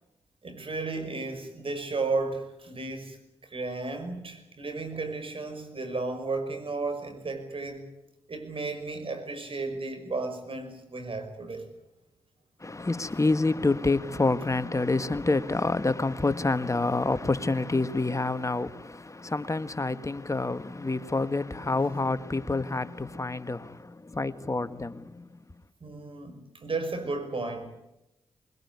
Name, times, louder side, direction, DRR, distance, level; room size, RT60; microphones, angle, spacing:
voice 1, 0.4-3.2 3.4-7.9 8.3-11.7 21.8-21.9 25.8-27.7, right 3 dB, 50° right, 5.7 m, -34 dB
voice 2, 12.6-25.3, left 3 dB, 25° left, 1.6 m, -28 dB
21.0 x 21.0 x 9.7 m
supercardioid pair, 40°, 11 cm